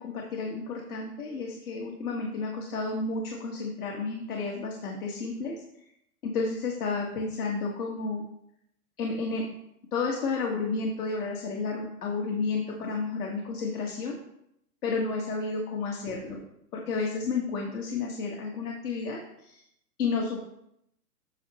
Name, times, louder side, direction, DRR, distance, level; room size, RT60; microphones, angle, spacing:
voice 1, 0.0-5.5 6.2-8.2 9.0-9.4 9.9-14.2 14.8-16.4 16.7-19.6 20.0-20.4, left 4 dB, 70° left, 0 dB, 1.7 m, -31 dB
8.9 x 6.3 x 3.0 m, 0.77 s
hypercardioid pair, 125°, 46 cm